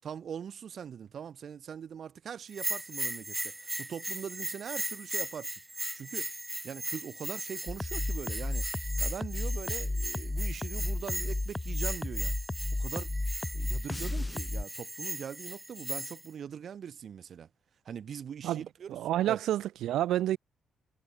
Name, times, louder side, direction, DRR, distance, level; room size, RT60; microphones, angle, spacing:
voice 1, 0.0-5.5 5.9-6.3 6.6-8.7 9.0-12.4 12.7-13.1 13.5-17.5 17.8-19.0 19.3-19.4, right 8 dB, 55° right, 6.8 m, -42 dB
Bell, 2.5-16.3, right 1 dB, 10° right, 6.3 m, -38 dB
sound 1, 7.7-14.6, left 2 dB, 15° left, 4.6 m, -33 dB
voice 2, 18.4-20.4, right 13 dB, 80° right, 3.1 m, -29 dB
cardioid pair, 90°, 0 cm